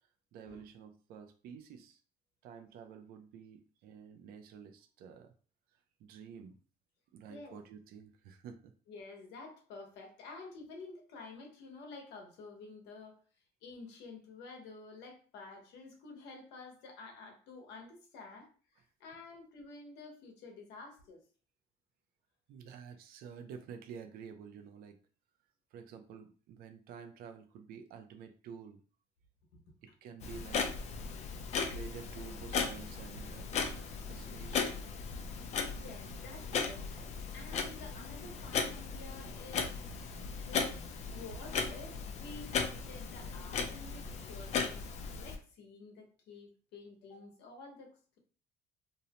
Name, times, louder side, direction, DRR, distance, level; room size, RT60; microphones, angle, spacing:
voice 1, 0.3-2.0 2.4-5.3 6.0-6.6 7.1-8.7 22.5-25.0 25.7-28.8 29.8-30.7 31.6-34.8, right 7 dB, 60° right, 8 dB, 0.4 m, -50 dB
voice 2, 8.9-13.2 13.6-21.2 29.5-29.6 29.9-30.0 35.8-39.9 40.5-40.8 41.1-48.2, left 3 dB, 80° left, 2 dB, 0.8 m, -50 dB
Clock, 30.2-45.4, left 5 dB, 40° left, 0.4 m, -37 dB
2.6 x 2.0 x 2.8 m, 0.39 s
cardioid pair, 165°, 17 cm